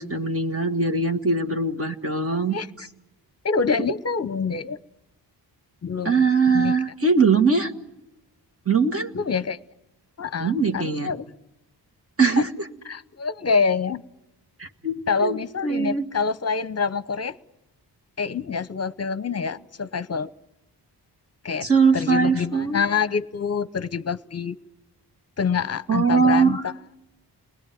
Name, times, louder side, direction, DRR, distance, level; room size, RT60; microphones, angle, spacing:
voice 1, 0.0-2.6 6.1-7.7 8.7-9.1 10.4-11.1 12.2-12.7 14.6-16.1 21.6-22.9 25.9-26.6, right 4 dB, 30° right, 5 dB, 1.9 m, -21 dB
voice 2, 2.3-2.7 3.4-4.8 5.8-6.1 6.5-6.7 9.1-9.6 10.2-11.3 12.4-12.5 12.9-14.0 15.1-17.4 18.2-20.3 21.4-21.7 21.9-24.6 25.4-26.6, left 5 dB, 35° left, 15 dB, 0.9 m, -26 dB
30.0 x 20.5 x 9.3 m, 0.95 s
wide cardioid pair, 110°, 42 cm